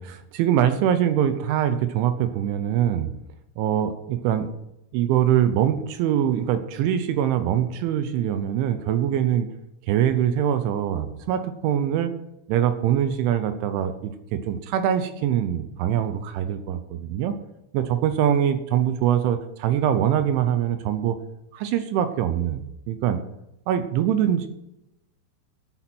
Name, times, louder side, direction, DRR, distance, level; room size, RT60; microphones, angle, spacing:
voice 1, 0.0-3.1 3.6-4.5 4.9-9.5 9.9-12.1 12.5-17.4 17.7-21.2 21.5-23.2 23.7-24.5, right 10 dB, 80° right, 10 dB, 3.1 m, -23 dB
11.0 x 8.8 x 5.9 m, 0.84 s
omnidirectional pair, 5.7 m